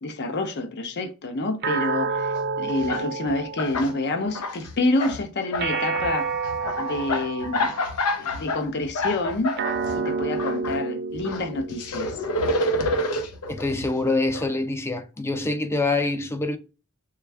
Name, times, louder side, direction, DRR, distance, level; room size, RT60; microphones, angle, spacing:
voice 1, 0.0-6.3 6.8-7.7 8.2-9.6 9.9-12.2, left 2 dB, 50° left, 0.6 m, -28 dB
sound 1, 1.6-4.2 5.6-8.1 9.6-12.2, right 4 dB, 50° right, 0.5 m, -29 dB
sound 2, 2.3-2.4 2.7-3.9 4.2-5.2 5.5-10.8 11.1-14.4, left 1 dB, 90° left, 0.6 m, -29 dB
voice 2, 13.5-16.6, left 2 dB, 10° left, 0.4 m, -25 dB
3.4 x 2.3 x 3.2 m
head